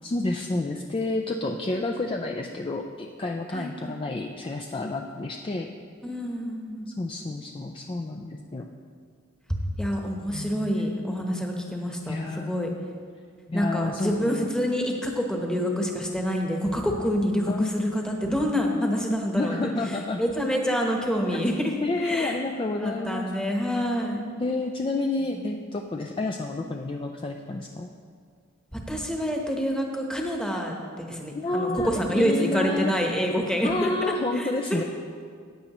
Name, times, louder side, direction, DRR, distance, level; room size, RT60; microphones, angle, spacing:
voice 1, 0.0-5.7 6.9-8.6 10.3-10.7 12.1-12.5 13.5-14.5 17.5-17.8 19.4-20.2 21.8-23.3 24.4-27.9 31.3-31.9 32.1-32.9 33.6-34.8, left 2 dB, 25° left, 2 dB, 0.4 m, -29 dB
voice 2, 3.5-4.0 6.0-6.9 9.5-12.7 13.5-19.7 20.2-21.7 22.0-22.4 22.8-24.2 25.3-25.4 28.7-34.8, equal, 5° left, 1 dB, 1.0 m, -27 dB
14.5 x 9.1 x 3.0 m, 2.1 s
head